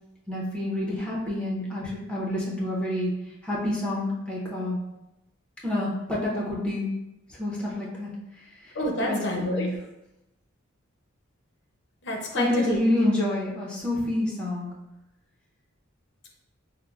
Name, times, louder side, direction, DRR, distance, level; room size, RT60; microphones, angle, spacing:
voice 1, 0.3-3.1 3.4-4.8 5.6-6.9 7.3-8.1 8.6-8.8 9.1-9.7 12.3-14.7, left 1 dB, 5° left, -5 dB, 0.7 m, -28 dB
voice 2, 8.7-9.7 12.0-12.8, equal, 60° left, 0 dB, 0.6 m, -28 dB
5.4 x 2.0 x 2.3 m, 0.92 s
head